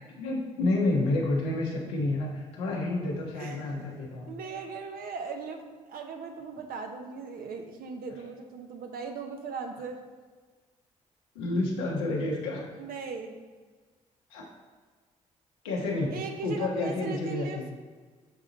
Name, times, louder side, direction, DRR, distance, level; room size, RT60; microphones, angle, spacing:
voice 1, 0.2-4.3 11.3-12.6 14.3-14.5 15.6-16.1 16.4-17.7, left 2 dB, 90° left, -2 dB, 1.0 m, -29 dB
voice 2, 3.4-3.9 4.3-10.0 12.8-13.4 16.1-17.6, right 4 dB, 65° right, 5 dB, 0.8 m, -39 dB
7.2 x 3.8 x 3.9 m, 1.4 s
hypercardioid pair, 50°, 16 cm